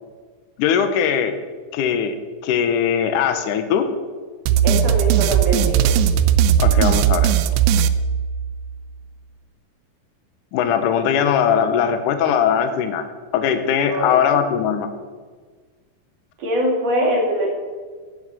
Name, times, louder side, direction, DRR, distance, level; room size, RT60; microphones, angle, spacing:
voice 1, 0.6-1.3 1.7-2.2 2.4-3.9 6.6-7.3 10.5-13.0 13.3-15.0, left 8 dB, 75° left, 8 dB, 2.4 m, -20 dB
sound 1, 4.5-8.7, right 9 dB, 85° right, 2.3 m, -17 dB
voice 2, 4.6-5.9 13.9-14.5 16.4-17.5, equal, 50° right, -1 dB, 3.6 m, -23 dB
12.5 x 7.1 x 8.2 m, 1.5 s
omnidirectional pair, 3.9 m